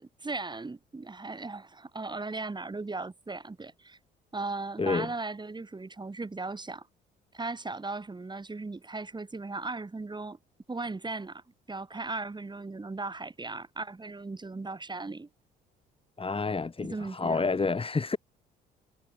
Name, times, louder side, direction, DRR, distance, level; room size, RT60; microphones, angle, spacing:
voice 1, 0.0-4.0 4.3-6.9 7.3-10.4 10.7-11.4 11.7-15.3 16.8-17.4, right 3 dB, 20° right, 2.7 m, -37 dB
voice 2, 4.8-5.1 16.2-18.2, left 4 dB, 25° left, 3.4 m, -29 dB
hypercardioid pair, 60°, 21 cm